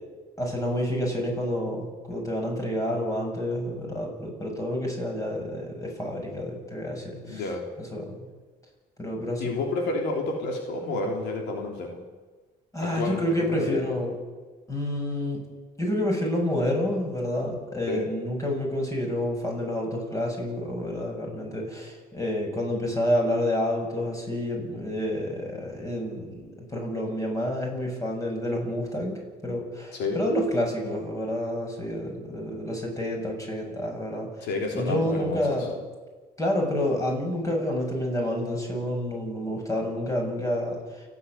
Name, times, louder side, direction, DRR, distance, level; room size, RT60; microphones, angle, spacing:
voice 1, 0.4-7.5 7.8-8.2 9.0-9.4 12.7-14.2 14.7-15.4 15.8-35.8 36.4-41.0, left 1 dB, 20° left, 0 dB, 7.7 m, -29 dB
voice 2, 7.2-7.7 9.4-12.0 12.8-13.8 17.9-18.0 29.9-30.2 34.4-35.4, left 3 dB, 85° left, 2 dB, 3.4 m, -30 dB
29.0 x 9.7 x 9.8 m, 1.3 s
cardioid pair, 110°, 17 cm